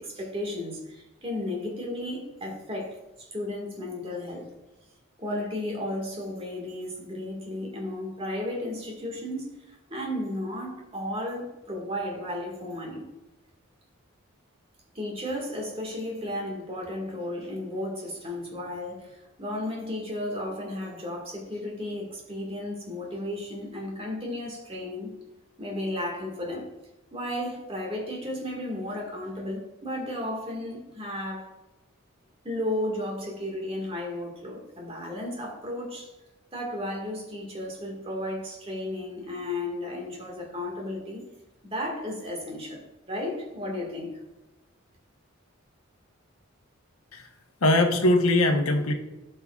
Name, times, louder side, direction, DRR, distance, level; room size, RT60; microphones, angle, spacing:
voice 1, 0.0-4.5 5.2-13.1 14.9-25.1 25.6-26.7 27.1-31.6 32.4-36.1 36.5-41.2 41.6-44.2, left 1 dB, 25° right, 0 dB, 1.8 m, -34 dB
voice 2, 47.6-48.9, left 1 dB, 85° left, 4 dB, 1.1 m, -21 dB
13.5 x 5.6 x 2.4 m, 1.0 s
head